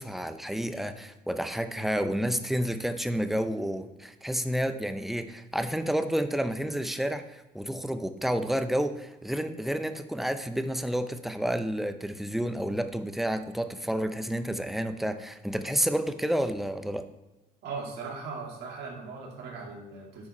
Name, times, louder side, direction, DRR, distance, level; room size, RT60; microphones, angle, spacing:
voice 1, 0.0-17.0, equal, ahead, 9 dB, 0.5 m, -30 dB
voice 2, 17.6-20.3, right 4 dB, 75° right, -1 dB, 2.1 m, -39 dB
9.5 x 4.7 x 4.2 m, 1.1 s
cardioid pair, 110°, 17 cm